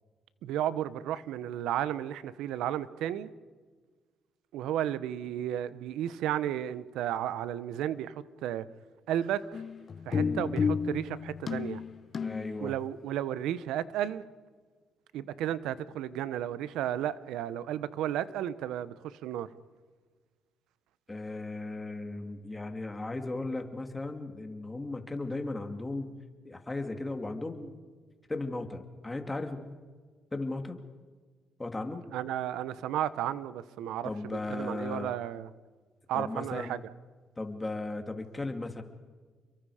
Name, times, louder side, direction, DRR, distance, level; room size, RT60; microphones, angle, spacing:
voice 1, 0.4-3.3 4.5-8.6 9.1-9.6 10.1-11.8 12.6-14.2 15.1-19.5 32.1-35.5 36.1-36.8, right 11 dB, 90° right, 0.9 m, -33 dB
sound 1, 9.5-12.6, left 5 dB, 45° left, 0.8 m, -32 dB
voice 2, 12.2-12.8 21.1-26.1 26.4-27.7 28.3-29.8 30.3-30.8 31.6-32.0 34.0-35.1 36.1-36.8 37.4-38.8, left 2 dB, 20° left, 2.6 m, -36 dB
30.0 x 22.5 x 5.0 m
cardioid pair, 90°, 0 cm